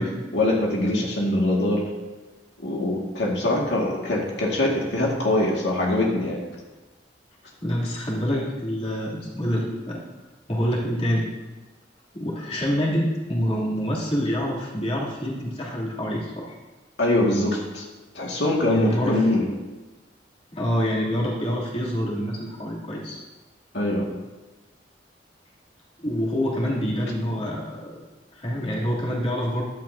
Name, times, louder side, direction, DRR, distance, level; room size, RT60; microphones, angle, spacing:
voice 1, 0.3-1.9 2.6-6.4 17.0-17.8 18.1-19.5 23.7-24.1, left 1 dB, 75° left, -3 dB, 2.1 m, -23 dB
voice 2, 7.6-10.0 10.5-11.3 12.1-16.6 18.7-19.3 20.5-23.2 26.0-28.0 28.3-29.6, equal, 35° left, -5 dB, 3.1 m, -26 dB
15.0 x 12.5 x 2.8 m, 1.2 s
head